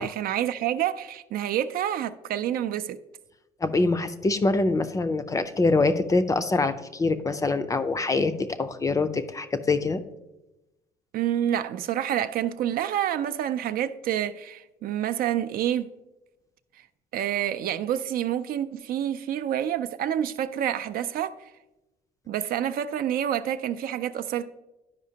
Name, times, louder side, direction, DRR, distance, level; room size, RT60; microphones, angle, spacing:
voice 1, 0.0-3.0 11.1-15.9 17.1-21.4 22.3-24.6, right 10 dB, 60° right, 0.4 m, -28 dB
voice 2, 3.6-10.0, left 3 dB, 20° left, 0.4 m, -24 dB
11.0 x 5.0 x 2.8 m
cardioid pair, 110°, 17 cm